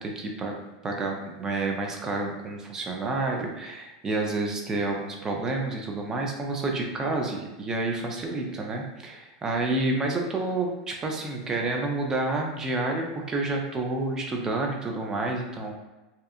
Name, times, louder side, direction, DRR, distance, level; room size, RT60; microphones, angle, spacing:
voice 1, 0.0-15.7, right 2 dB, 20° right, 1 dB, 0.5 m, -29 dB
2.8 x 2.2 x 2.4 m, 1.1 s
supercardioid pair, 120°, 3 cm